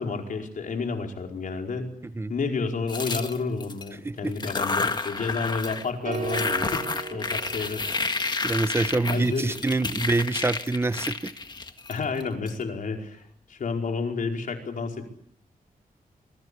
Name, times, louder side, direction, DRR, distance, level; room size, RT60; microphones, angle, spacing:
voice 1, 0.0-1.9 2.3-7.8 9.0-9.5 11.9-13.2 13.5-15.2, left 4 dB, 65° left, 3 dB, 4.9 m, -30 dB
sound 1, 2.9-3.9 4.3-5.9 6.1-12.5, left 3 dB, 30° left, 1.7 m, -30 dB
voice 2, 4.0-4.5 8.4-11.3, right 2 dB, 15° right, 13 dB, 1.0 m, -26 dB
sound 2, 6.1-8.4, right 4 dB, 60° right, 1.9 m, -35 dB
26.5 x 23.0 x 8.3 m, 0.66 s
wide cardioid pair, 150°, 15 cm